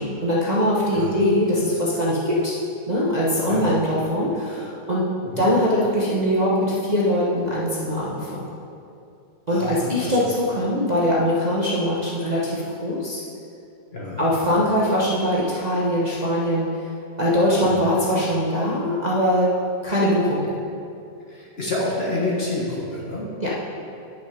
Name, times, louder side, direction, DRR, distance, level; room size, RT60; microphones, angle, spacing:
voice 1, 0.0-2.6 2.9-5.0 5.4-8.4 9.5-13.2 14.2-16.9 17.2-19.5 19.8-20.5 23.4-23.5, equal, 30° right, -7 dB, 1.1 m, -22 dB
voice 2, 3.4-3.7 5.3-5.5 9.5-10.3 13.9-14.2 17.6-17.8 21.3-23.2, left 2 dB, 40° left, -4 dB, 1.4 m, -28 dB
10.0 x 5.8 x 5.1 m, 2.6 s
omnidirectional pair, 1.9 m